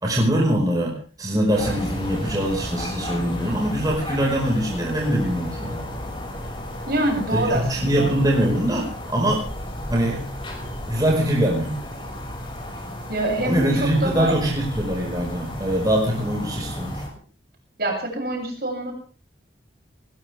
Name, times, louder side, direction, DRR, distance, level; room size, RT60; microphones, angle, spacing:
voice 1, 0.0-5.8 7.3-9.5 9.9-10.2 10.9-11.8 13.4-17.0, right 1 dB, 20° right, -1 dB, 4.9 m, -23 dB
sound 1, 1.5-17.1, left 1 dB, 25° left, 6.0 m, -33 dB
voice 2, 6.9-8.2 13.1-14.3 17.8-18.9, right 1 dB, 55° right, 1 dB, 7.5 m, -25 dB
20.0 x 20.0 x 3.5 m, 0.39 s
head